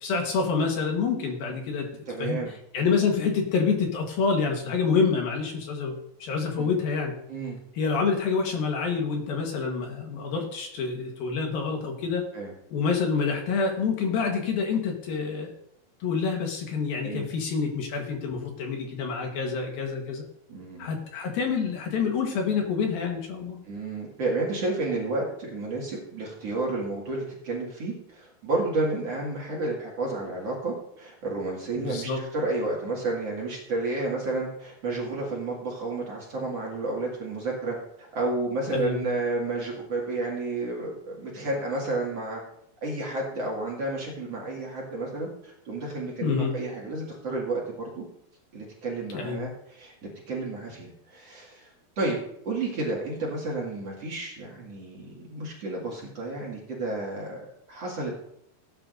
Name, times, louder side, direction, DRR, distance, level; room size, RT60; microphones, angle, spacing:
voice 1, 0.0-1.9 2.2-2.4 2.7-7.1 7.8-12.2 12.7-15.5 16.0-20.2 20.8-23.6 31.8-32.2 38.7-39.0 46.2-46.6 49.1-49.4, left 5 dB, 70° left, 2 dB, 2.8 m, -27 dB
voice 2, 2.1-2.5 6.6-6.7 7.3-7.6 12.3-12.5 17.0-17.3 20.5-20.9 23.6-42.4 42.8-47.6 48.0-48.1 48.5-49.9 50.3-52.2 52.4-57.4 57.7-58.1, right 2 dB, 45° right, -4 dB, 2.5 m, -31 dB
17.0 x 10.0 x 2.6 m, 0.76 s
omnidirectional pair, 4.9 m